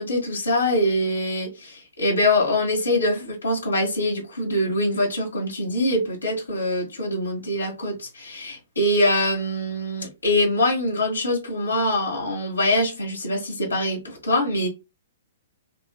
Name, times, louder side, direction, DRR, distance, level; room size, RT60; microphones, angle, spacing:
voice 1, 0.0-14.7, left 1 dB, 85° left, 1.6 m, -24 dB
4.5 x 3.0 x 2.2 m
figure-of-eight pair, 120°, 0 cm